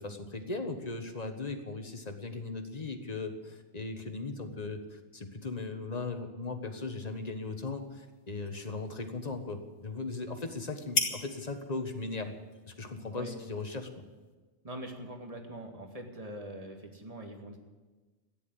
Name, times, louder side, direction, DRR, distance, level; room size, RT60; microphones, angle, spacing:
voice 1, 0.0-12.3 12.7-14.0, left 3 dB, 35° left, 6 dB, 1.5 m, -38 dB
sound 1, 6.6-14.3, left 3 dB, 75° left, 2.7 m, -41 dB
voice 2, 14.6-17.6, right 1 dB, 30° right, 3 dB, 2.1 m, -43 dB
13.5 x 10.5 x 10.0 m, 1.3 s
omnidirectional pair, 1.2 m